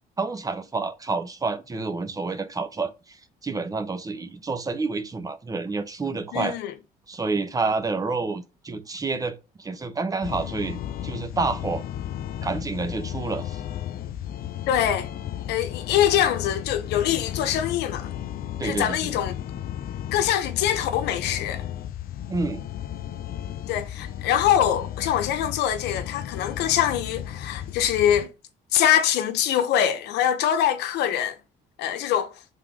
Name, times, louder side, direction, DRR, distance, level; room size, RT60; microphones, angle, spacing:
voice 1, 0.2-3.2 3.4-6.6 7.1-11.8 12.4-13.6 18.6-19.2 22.3-22.6, right 3 dB, 20° right, 0.9 m, -29 dB
voice 2, 6.3-6.7 14.7-15.1 15.5-18.1 18.6-19.3 20.1-21.6 23.7-28.3 28.7-31.4 31.8-32.3, left 10 dB, 85° left, 0.9 m, -23 dB
sound 1, 10.2-28.3, left 11 dB, 60° left, 0.6 m, -34 dB
5.8 x 3.7 x 5.0 m
cardioid pair, 110°, 17 cm